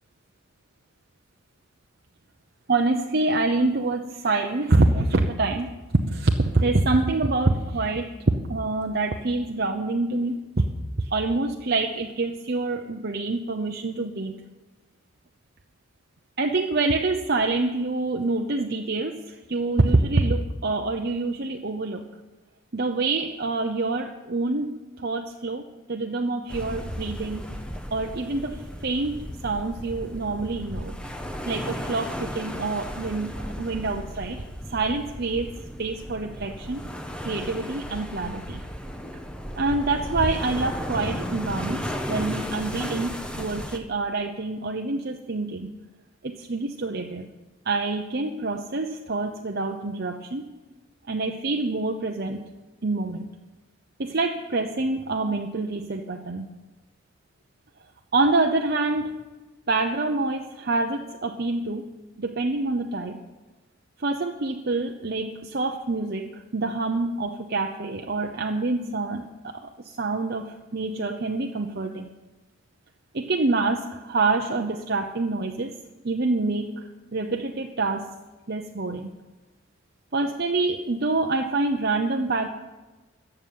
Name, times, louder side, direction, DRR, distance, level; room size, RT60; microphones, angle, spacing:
voice 1, 2.7-5.7 6.1-8.1 8.5-10.6 11.0-14.3 16.4-22.1 22.7-24.7 25.0-25.6 25.9-27.6 27.9-29.2 29.4-31.0 31.5-34.4 34.7-35.5 35.8-36.8 37.2-38.6 39.6-45.7 46.2-47.3 47.7-50.5 51.1-52.4 52.8-53.3 54.0-56.5 58.1-59.2 59.7-61.9 62.2-63.2 64.0-72.1 73.1-75.7 76.0-78.1 78.5-79.1 80.1-82.5, right 3 dB, 50° right, 3 dB, 0.8 m, -26 dB
sound 1, 26.5-43.8, equal, 5° left, 1.1 m, -34 dB
14.5 x 7.0 x 9.4 m, 1.1 s
head